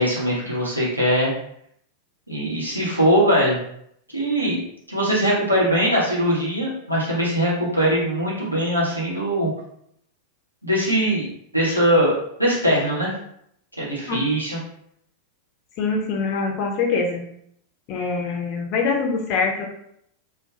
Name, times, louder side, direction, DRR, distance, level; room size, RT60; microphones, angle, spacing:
voice 1, 0.0-1.3 2.3-3.6 4.1-4.6 4.9-9.5 10.6-11.3 11.5-13.1 13.8-14.6 18.0-18.1, equal, 90° right, -7 dB, 0.8 m, -21 dB
voice 2, 15.8-17.2 17.9-19.7, left 4 dB, 40° left, 1 dB, 0.4 m, -24 dB
2.2 x 2.1 x 2.7 m, 0.71 s
figure-of-eight pair, 90°, 0 cm